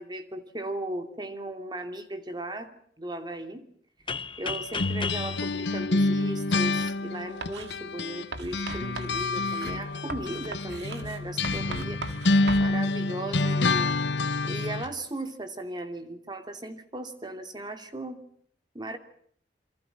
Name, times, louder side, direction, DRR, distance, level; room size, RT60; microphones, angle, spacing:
voice 1, 0.0-3.7 4.4-12.0 12.6-13.9 14.4-18.2 18.7-19.0, right 1 dB, 25° right, 8 dB, 2.8 m, -37 dB
sound 1, 4.1-6.8, left 5 dB, 30° left, 1.2 m, -35 dB
sound 2, 4.8-8.3 8.5-14.9, left 2 dB, 90° left, 1.1 m, -27 dB
Writing, 7.4-7.8 8.3-12.7, right 2 dB, 75° right, 2.2 m, -39 dB
28.5 x 24.5 x 5.7 m, 0.64 s
head